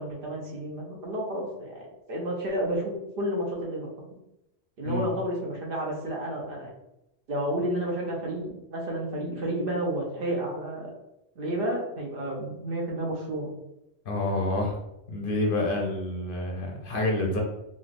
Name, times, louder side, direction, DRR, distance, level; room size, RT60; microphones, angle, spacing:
voice 1, 0.0-3.9 4.8-6.7 7.3-10.9 11.4-13.5, right 1 dB, 60° right, -1 dB, 0.8 m, -31 dB
voice 2, 14.1-14.8 15.1-17.4, left 2 dB, 60° left, 0 dB, 0.7 m, -28 dB
3.2 x 2.4 x 2.4 m, 0.88 s
omnidirectional pair, 1.2 m